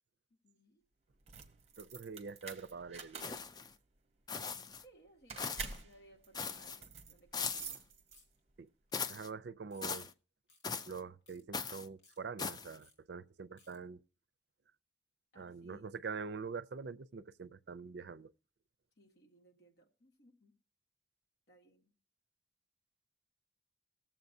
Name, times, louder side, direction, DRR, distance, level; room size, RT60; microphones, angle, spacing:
voice 1, 0.3-0.8 4.8-7.9 15.3-15.9 19.0-20.5 21.5-21.9, right 1 dB, 60° left, 1.7 m, -64 dB
sound 1, 1.1-8.5, right 5 dB, 35° right, 0.9 m, -48 dB
voice 2, 1.8-3.4 8.6-8.7 9.1-10.1 10.9-14.0 15.4-18.3, right 5 dB, 65° right, 0.4 m, -45 dB
sound 2, 3.2-3.7 4.3-4.8 5.4-5.8 6.3-6.8 7.3-7.8 8.9-9.3 9.8-10.1 10.6-11.0 11.5-11.9 12.4-12.8, left 5 dB, 20° left, 0.4 m, -40 dB
sound 3, 8.1-8.4 8.9-9.1 9.7-9.9 10.5-10.6 11.3-11.4 12.0-12.2 12.8-13.0 13.6-13.8, left 3 dB, 90° left, 3.1 m, -65 dB
19.5 x 7.4 x 2.6 m
head